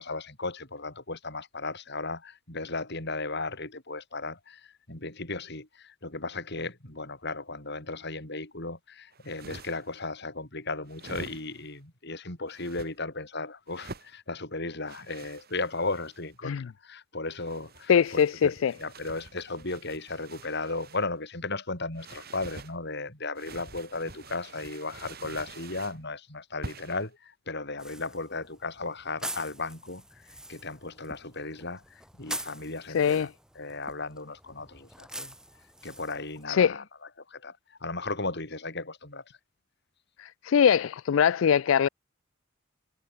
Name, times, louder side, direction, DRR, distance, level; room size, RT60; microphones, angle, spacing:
voice 1, 0.0-18.5 18.8-33.3 33.5-35.3 35.8-36.8 37.3-39.2, left 3 dB, 60° left, 6.6 m, -36 dB
sound 1, 9.1-10.0 10.9-11.8 12.5-12.9 13.7-14.1 14.9-16.3 17.3-21.1 22.0-22.7 23.3-26.0 26.6-27.1, right 3 dB, 50° right, 3.9 m, -46 dB
voice 2, 17.9-18.7 32.9-33.3 36.5-36.7 40.2-41.9, left 7 dB, 75° left, 0.4 m, -22 dB
sound 2, 27.8-36.5, right 1 dB, 5° right, 5.4 m, -44 dB
head